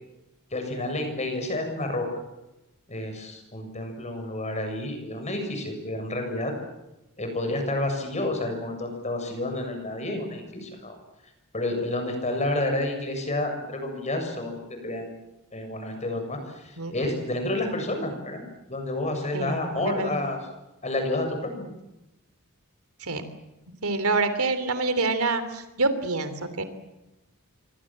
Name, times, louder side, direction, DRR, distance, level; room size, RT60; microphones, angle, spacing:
voice 1, 0.5-2.1 2.9-6.5 7.2-11.0 11.5-15.1 15.5-18.4 18.7-20.4 20.8-21.7, left 1 dB, 30° left, 5 dB, 7.1 m, -30 dB
voice 2, 19.3-20.2 23.0-23.2 23.8-26.6, right 3 dB, 75° right, 11 dB, 3.2 m, -26 dB
28.0 x 24.0 x 7.5 m, 0.96 s
head